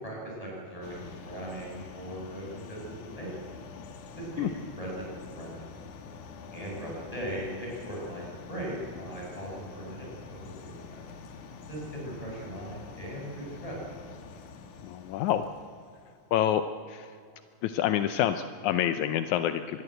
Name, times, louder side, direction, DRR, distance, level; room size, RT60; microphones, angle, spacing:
voice 1, 0.0-2.8 3.2-3.3 4.2-4.3 4.8-5.6 6.5-11.0 11.7-13.8, right 1 dB, 10° left, -3 dB, 7.6 m, -39 dB
sound 1, 0.8-16.3, left 5 dB, 60° left, 2.5 m, -46 dB
voice 2, 14.8-15.5 16.3-17.1 17.6-19.8, left 11 dB, 80° left, 10 dB, 1.7 m, -27 dB
25.5 x 20.5 x 8.0 m, 2.3 s
omnidirectional pair, 4.2 m